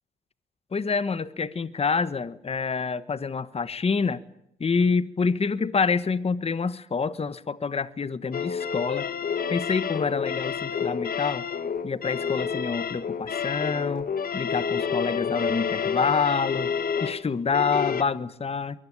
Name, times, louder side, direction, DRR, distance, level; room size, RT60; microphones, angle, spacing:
voice 1, 0.7-4.2 4.6-9.1 9.5-11.5 11.8-14.1 14.3-16.7 17.0-18.8, left 5 dB, 30° left, 15 dB, 1.3 m, -27 dB
sound 1, 8.3-18.0, left 6 dB, 45° left, 1.6 m, -29 dB
23.0 x 19.0 x 10.0 m, 0.79 s
cardioid pair, 90°, 20 cm